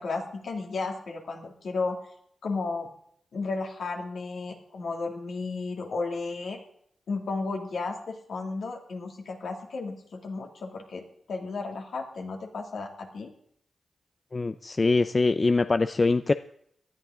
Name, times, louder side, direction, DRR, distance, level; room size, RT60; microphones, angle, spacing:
voice 1, 0.0-2.0 2.4-2.9 3.3-6.6 7.1-13.3, left 3 dB, 75° left, 1 dB, 2.6 m, -33 dB
voice 2, 14.3-16.3, left 3 dB, 45° left, 11 dB, 0.6 m, -23 dB
18.5 x 11.5 x 3.8 m, 0.67 s
supercardioid pair, 45°, 0 cm